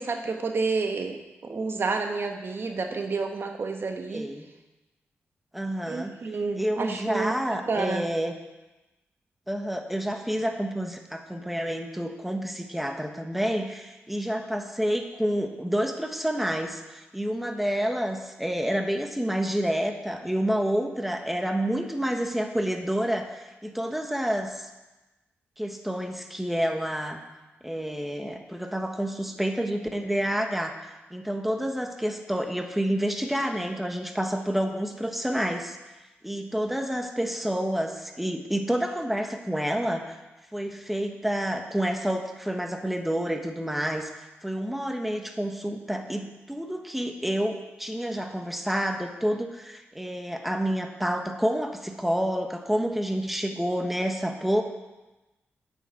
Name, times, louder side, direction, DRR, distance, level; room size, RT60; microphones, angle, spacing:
voice 1, 0.0-4.3 5.9-8.1, right 4 dB, 55° right, 4 dB, 1.2 m, -30 dB
voice 2, 4.1-4.5 5.5-6.1 6.6-8.4 9.5-24.7 25.6-27.2 27.6-30.7 31.1-35.8 36.2-40.2 40.5-54.6, equal, 5° right, 4 dB, 1.4 m, -29 dB
9.8 x 7.1 x 8.5 m, 1.1 s
cardioid pair, 65°, 5 cm